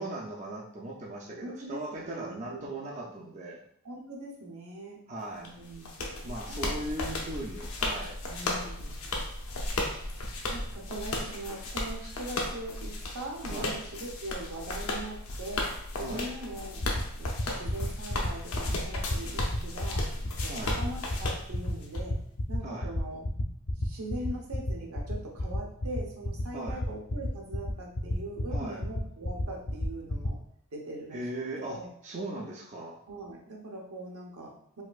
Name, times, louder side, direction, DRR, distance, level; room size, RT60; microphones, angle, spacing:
voice 1, 0.0-3.6 5.1-5.5 6.2-8.2 13.5-13.7 16.0-16.3 20.4-20.8 22.6-22.9 26.5-26.8 28.5-28.8 31.1-33.0, right 1 dB, 30° right, -2 dB, 0.4 m, -38 dB
voice 2, 1.4-3.0 3.8-5.0 5.4-6.1 6.5-6.8 8.3-9.0 10.5-16.8 17.2-20.1 20.4-22.2 22.5-23.2 23.8-30.4 30.7-31.2 31.6-31.9 33.1-34.8, right 1 dB, 90° right, -1 dB, 0.9 m, -41 dB
sound 1, 5.4-22.0, left 2 dB, 85° left, 0.6 m, -35 dB
sound 2, 16.8-30.3, left 1 dB, 45° left, 0.4 m, -31 dB
4.1 x 2.5 x 2.4 m, 0.70 s
head